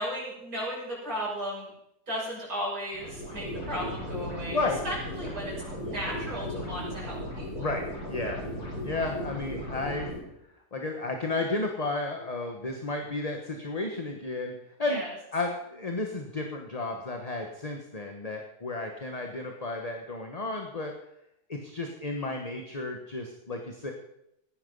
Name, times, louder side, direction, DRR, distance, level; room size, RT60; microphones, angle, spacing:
voice 1, 0.0-1.7 2.1-5.6 5.8-7.7 14.8-15.1, equal, 65° right, -6 dB, 6.9 m, -35 dB
sound 1, 2.9-10.2, equal, 70° left, 5.2 m, -36 dB
voice 2, 7.6-8.4 8.8-10.1 10.7-15.0 15.3-20.9 21.5-23.9, left 2 dB, 25° left, 3 dB, 1.2 m, -33 dB
16.0 x 9.9 x 5.5 m, 0.82 s
omnidirectional pair, 1.7 m